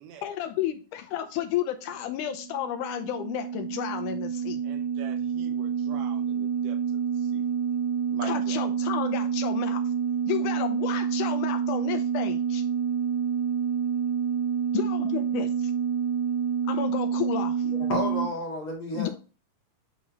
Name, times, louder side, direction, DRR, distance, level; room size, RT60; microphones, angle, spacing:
voice 1, 0.2-4.6 8.2-9.8 10.3-12.6 14.7-15.7 16.7-17.7 18.9-19.1, left 11 dB, 80° left, 2.1 m, -32 dB
sound 1, 2.1-18.3, right 7 dB, 65° right, 2.1 m, -28 dB
voice 2, 4.6-6.8 7.1-7.5 8.1-8.6, right 6 dB, 80° right, 2.4 m, -44 dB
voice 3, 17.7-19.1, left 1 dB, 45° left, 2.7 m, -31 dB
8.2 x 3.7 x 3.0 m
omnidirectional pair, 3.8 m